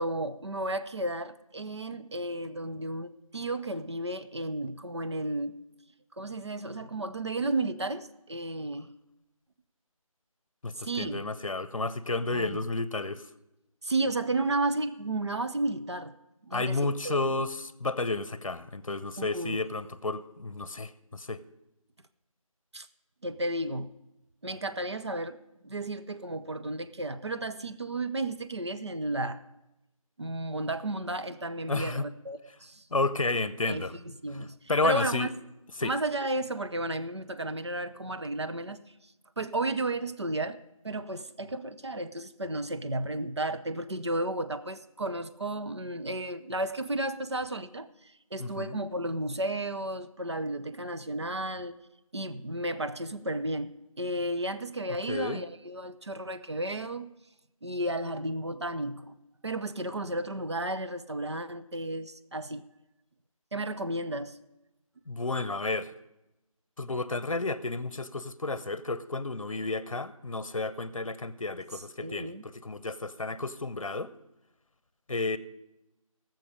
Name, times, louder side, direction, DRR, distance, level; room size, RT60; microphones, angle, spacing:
voice 1, 0.0-5.5 6.2-8.9 10.8-11.2 12.3-12.6 13.8-16.1 16.4-17.4 19.2-19.6 22.7-22.9 23.2-23.9 24.4-25.4 25.6-29.4 30.2-32.9 33.7-35.3 35.8-38.8 39.4-40.6 40.8-51.8 52.1-57.1 57.6-59.2 59.4-62.6 63.5-64.4 71.7-72.4, right 2 dB, 50° right, 11 dB, 0.6 m, -33 dB
voice 2, 10.6-13.2 16.5-21.4 31.7-32.1 32.9-33.9 34.7-35.3 35.8-35.9 48.4-48.8 55.1-55.4 65.1-65.9 66.8-74.1 75.1-75.4, left 3 dB, 65° left, 15 dB, 0.7 m, -31 dB
17.5 x 7.7 x 5.0 m, 0.94 s
figure-of-eight pair, 175°, 18 cm